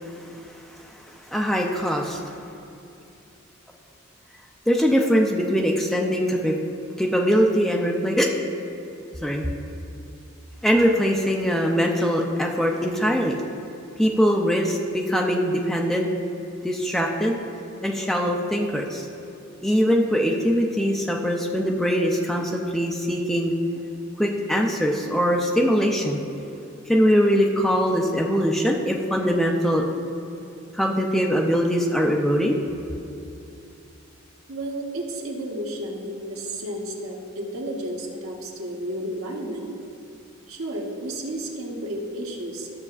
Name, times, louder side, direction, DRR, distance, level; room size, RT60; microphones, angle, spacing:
voice 1, 1.3-2.3 4.7-6.6 7.0-8.3 9.2-9.5 10.6-13.3 14.0-16.1 16.6-17.4 17.8-19.1 19.6-23.5 24.2-26.2 26.9-29.8 30.7-32.6, equal, ahead, 0 dB, 0.4 m, -22 dB
voice 2, 34.5-39.7 40.5-42.7, right 1 dB, 80° right, 0 dB, 1.1 m, -32 dB
13.0 x 6.6 x 2.4 m, 2.7 s
head